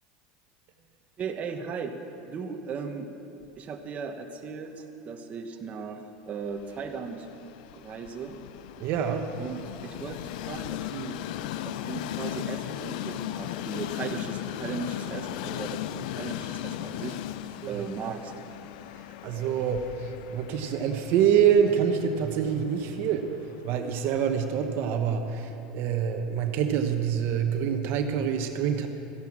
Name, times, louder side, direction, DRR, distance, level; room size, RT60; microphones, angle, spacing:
voice 1, 1.2-1.9 2.3-3.1 3.6-4.7 5.1-7.3 7.8-8.4 9.4-10.2 10.5-11.2 11.6-17.2 17.7-18.3, right 5 dB, 30° right, 4 dB, 1.1 m, -37 dB
Train, 6.5-24.6, left 12 dB, 75° left, 0.5 m, -38 dB
voice 2, 8.8-9.3 17.6-17.7 18.1-18.2 19.2-23.3 23.6-28.9, right 8 dB, 55° right, 6 dB, 1.1 m, -26 dB
14.5 x 10.5 x 7.4 m, 2.8 s
supercardioid pair, 120°, 4 cm